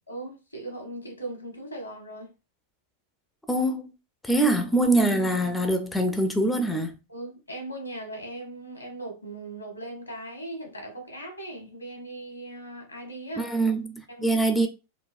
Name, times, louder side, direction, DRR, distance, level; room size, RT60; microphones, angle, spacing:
voice 1, 0.1-2.3 7.1-13.5 14.1-14.4, right 1 dB, 85° left, 1.1 m, -39 dB
voice 2, 3.5-3.8 4.2-6.9 13.4-14.7, right 1 dB, 5° left, 0.5 m, -24 dB
3.9 x 2.3 x 2.5 m
figure-of-eight pair, 90°, 0 cm